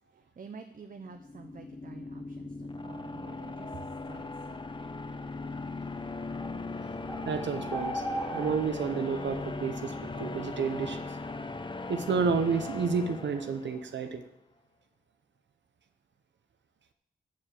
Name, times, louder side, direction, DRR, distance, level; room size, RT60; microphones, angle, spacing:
voice 1, 0.1-4.7, right 4 dB, 50° right, 7 dB, 0.8 m, -48 dB
sound 1, 1.1-14.0, left 3 dB, 25° left, 0.8 m, -39 dB
sound 2, 6.4-6.5 7.1-8.6, right 1 dB, 5° right, 2.4 m, -36 dB
voice 2, 7.3-11.2 11.9-14.2, right 5 dB, 85° right, 8 dB, 0.8 m, -30 dB
13.5 x 4.8 x 7.5 m, 0.78 s
wide cardioid pair, 90°, 18 cm